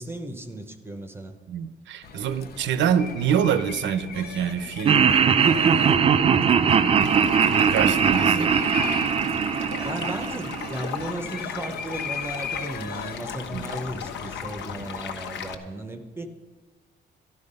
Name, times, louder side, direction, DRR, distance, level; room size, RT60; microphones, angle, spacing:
voice 1, 0.0-1.4 8.3-8.6 9.8-16.3, right 1 dB, 10° right, 8 dB, 0.8 m, -35 dB
voice 2, 1.5-5.1 6.2-7.0 7.4-8.5 13.5-13.6, right 8 dB, 70° right, 13 dB, 0.8 m, -26 dB
sound 1, 2.0-14.9, left 6 dB, 55° left, 0.8 m, -38 dB
Laughter, 4.9-11.0, right 7 dB, 30° right, 0.4 m, -20 dB
Stream, 7.0-15.5, left 7 dB, 70° left, 1.2 m, -36 dB
13.0 x 12.0 x 5.4 m, 1.4 s
cardioid pair, 180°, 19 cm